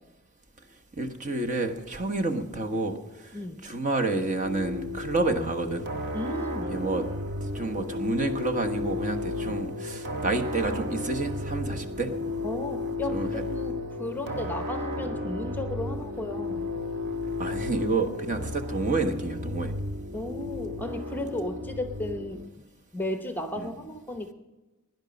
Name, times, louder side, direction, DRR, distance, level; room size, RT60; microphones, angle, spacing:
voice 1, 1.0-5.9 6.7-7.1 7.5-12.1 13.1-13.3 17.4-19.7 23.6-23.7, right 2 dB, 35° right, 5 dB, 1.2 m, -29 dB
voice 2, 3.3-3.7 6.1-6.8 9.4-9.6 12.4-16.7 20.1-22.4 22.9-24.3, left 1 dB, 10° left, 7 dB, 0.8 m, -34 dB
sound 1, 4.4-22.5, left 2 dB, 50° right, 1.5 m, -33 dB
17.0 x 10.5 x 5.2 m, 1.1 s
head